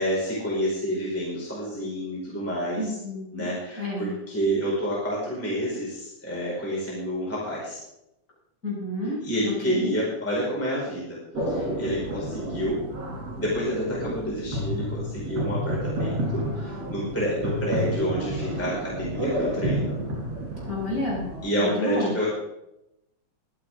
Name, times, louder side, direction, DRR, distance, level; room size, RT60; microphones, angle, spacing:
voice 1, 0.0-2.9 3.3-7.8 9.2-11.2 11.5-12.8 13.4-20.0 21.4-22.3, equal, 5° left, -6 dB, 4.9 m, -29 dB
voice 2, 2.8-3.5 3.8-4.1 8.6-9.2 9.4-9.9 20.7-21.3 21.6-22.1, left 1 dB, 25° left, -5 dB, 6.4 m, -30 dB
sound 1, 11.3-21.5, equal, 50° right, 4.2 m, -30 dB
23.5 x 9.7 x 3.8 m, 0.86 s
omnidirectional pair, 3.6 m